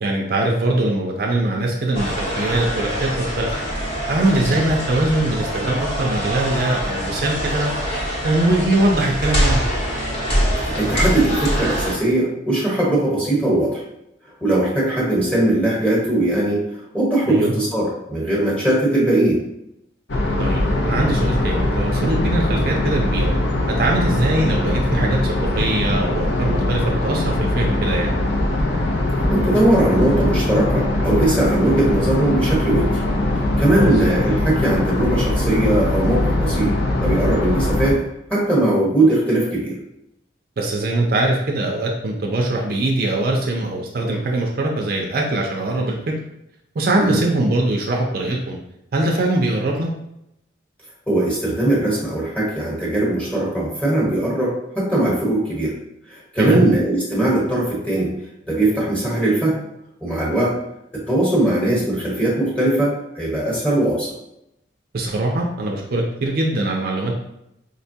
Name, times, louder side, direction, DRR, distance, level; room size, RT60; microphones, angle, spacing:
voice 1, 0.0-3.5 4.1-7.7 8.2-9.6 17.3-17.5 20.4-23.3 23.7-28.1 33.7-33.9 40.6-46.1 46.8-48.6 48.9-49.9 56.4-56.6 64.9-67.1, right 2 dB, 50° right, 0 dB, 0.4 m, -22 dB
sound 1, 1.9-11.9, equal, 30° left, 0.9 m, -24 dB
voice 2, 10.6-13.8 14.4-16.6 16.9-19.4 29.3-32.9 33.3-36.7 37.0-38.0 38.3-39.8 47.0-47.2 51.1-55.8 56.1-58.1 58.5-59.6 60.0-60.5 61.1-64.1, right 1 dB, 5° left, -7 dB, 1.1 m, -20 dB
sound 2, 20.1-37.9, left 1 dB, 70° left, 0.6 m, -21 dB
5.2 x 2.2 x 2.7 m, 0.84 s
head